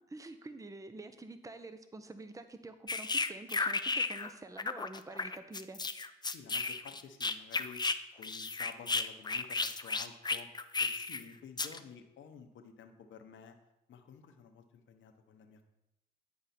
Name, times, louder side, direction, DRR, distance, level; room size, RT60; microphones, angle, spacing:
voice 1, 0.0-5.8, right 2 dB, 15° right, 10 dB, 0.7 m, -48 dB
sound 1, 2.9-4.3 4.6-8.0 8.2-11.2 11.6-11.8, left 4 dB, 20° left, 0.5 m, -34 dB
voice 2, 6.3-7.8 8.2-10.5 10.8-13.6 13.9-15.6, left 6 dB, 70° left, 6 dB, 0.9 m, -52 dB
9.3 x 4.8 x 4.3 m, 0.89 s
supercardioid pair, 50°, 21 cm